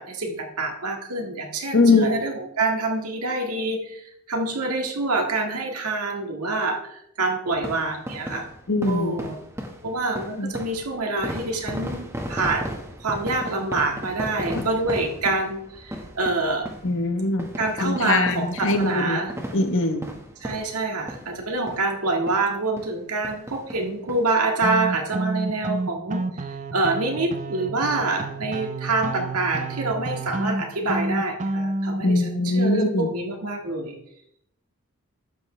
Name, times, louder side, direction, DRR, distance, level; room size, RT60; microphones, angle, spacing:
voice 1, 0.0-8.5 8.8-9.4 9.8-16.7 17.6-19.3 20.4-26.5 26.7-34.0, right 2 dB, 85° right, 2 dB, 1.8 m, -26 dB
voice 2, 1.7-2.1 8.7-9.2 10.4-10.5 14.5-14.7 16.8-17.5 17.8-19.2 19.5-20.0 32.0-33.1, left 2 dB, 60° left, 7 dB, 1.1 m, -21 dB
sound 1, 7.5-21.4 21.7-21.8 22.3-22.4 22.8-22.9 23.2-24.2 24.6-24.7 24.9-25.0, equal, 10° right, 1.4 m, -36 dB
sound 2, 24.6-32.0, right 2 dB, 35° right, 0.7 m, -29 dB
12.0 x 7.8 x 3.3 m, 0.73 s
head